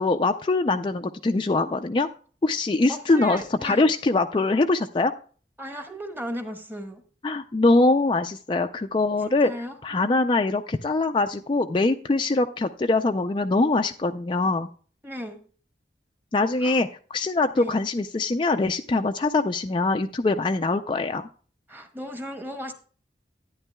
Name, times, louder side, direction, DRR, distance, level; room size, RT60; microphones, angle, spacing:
voice 1, 0.0-2.1 2.4-5.1 7.2-9.5 9.8-14.7 16.3-21.2, left 2 dB, 30° left, 0.4 m, -23 dB
voice 2, 2.9-3.9 5.6-7.0 9.4-9.7 15.0-15.4 16.6-16.8 17.5-17.7 21.7-22.7, equal, 10° right, 1.3 m, -35 dB
12.0 x 9.9 x 2.2 m
head